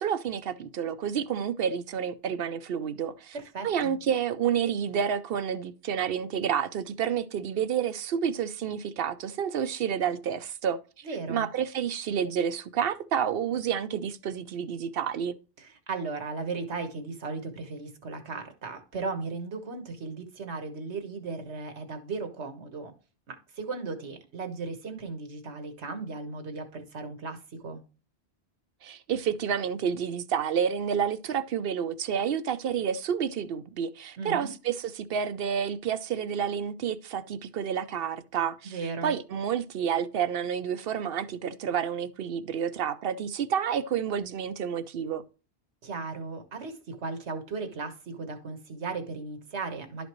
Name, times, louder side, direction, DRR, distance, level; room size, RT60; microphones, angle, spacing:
voice 1, 0.0-15.4 28.8-45.2, right 8 dB, 65° right, 0.8 m, -29 dB
voice 2, 3.3-4.0 11.0-11.5 15.6-22.9 23.3-27.8 34.2-34.5 38.6-39.1 45.8-50.1, right 4 dB, 90° right, 1.6 m, -36 dB
11.5 x 5.1 x 3.0 m
omnidirectional pair, 1.1 m